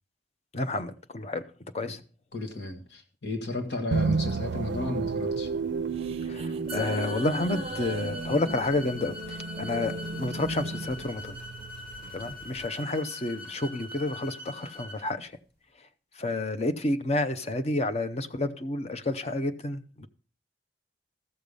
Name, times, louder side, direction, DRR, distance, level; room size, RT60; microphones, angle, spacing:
voice 1, 0.5-1.4 1.7-2.0 6.2-11.4 12.1-15.3 16.2-20.1, left 2 dB, 35° left, 0.8 m, -30 dB
voice 2, 2.3-5.5, left 2 dB, 75° left, 1.8 m, -33 dB
sound 1, 3.9-12.7, right 4 dB, 80° right, 0.4 m, -33 dB
sound 2, 5.7-12.3, right 2 dB, 35° right, 0.6 m, -42 dB
sound 3, 6.7-15.0, left 3 dB, 5° left, 3.0 m, -42 dB
14.0 x 6.7 x 5.3 m
head